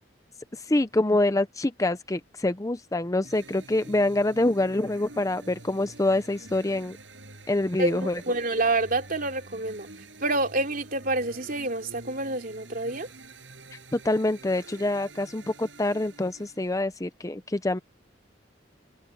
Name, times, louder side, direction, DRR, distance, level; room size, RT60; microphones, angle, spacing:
voice 1, 0.7-7.0 7.5-8.2 13.9-17.8, left 2 dB, 20° left, 0.6 m, -26 dB
sound 1, 3.2-16.7, right 2 dB, 70° right, 7.6 m, -47 dB
voice 2, 7.8-9.9 10.2-13.1, right 2 dB, 50° right, 3.4 m, -28 dB
head